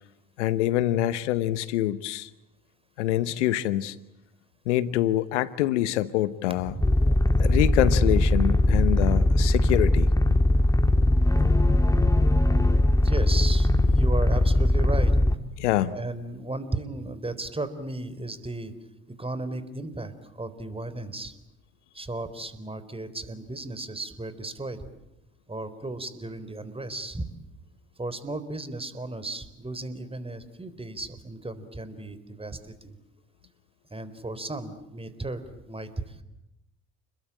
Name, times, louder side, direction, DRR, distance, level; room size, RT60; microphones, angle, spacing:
voice 1, 0.4-2.3 3.0-4.0 4.7-6.7 7.4-10.1 15.6-16.0, left 14 dB, 80° left, 16 dB, 1.1 m, -25 dB
sound 1, 6.8-15.4, left 1 dB, 10° left, 1.9 m, -20 dB
voice 2, 13.0-15.2 15.9-18.7 19.2-21.4 21.9-24.9 25.5-27.3 28.0-33.0 33.9-36.2, right 2 dB, 15° right, 13 dB, 4.0 m, -35 dB
29.5 x 21.5 x 8.9 m, 0.87 s
hypercardioid pair, 55°, 35 cm